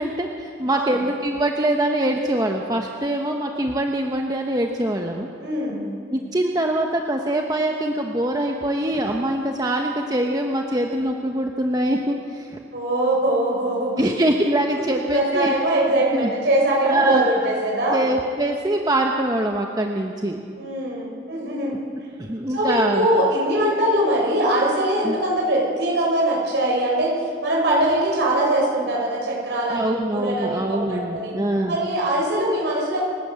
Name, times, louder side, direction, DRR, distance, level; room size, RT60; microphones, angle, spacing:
voice 1, 0.0-5.3 6.1-12.6 14.0-15.5 16.1-16.3 16.8-17.3 17.9-20.4 22.2-23.1 25.0-25.2 29.7-31.8, right 1 dB, 20° right, 2 dB, 1.0 m, -23 dB
voice 2, 5.4-5.9 12.7-14.1 14.8-18.0 20.6-21.8 22.5-27.2 27.4-31.3 31.7-33.0, right 1 dB, 60° right, -4 dB, 7.2 m, -22 dB
28.5 x 12.5 x 8.2 m, 2.3 s
head